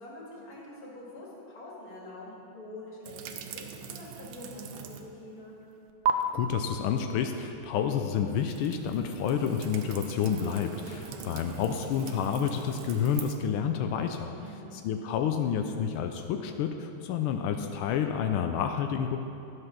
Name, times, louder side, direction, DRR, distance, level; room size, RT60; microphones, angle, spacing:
voice 1, 0.0-5.6 10.9-11.3 14.4-14.8, left 1 dB, 45° left, -4 dB, 2.4 m, -45 dB
sound 1, 3.0-5.2 5.5-6.1 8.2-13.4, right 7 dB, 75° right, 1.4 m, -38 dB
voice 2, 6.3-14.3 14.7-19.2, left 8 dB, 85° left, 5 dB, 1.5 m, -29 dB
11.0 x 6.4 x 5.9 m, 2.7 s
omnidirectional pair, 2.3 m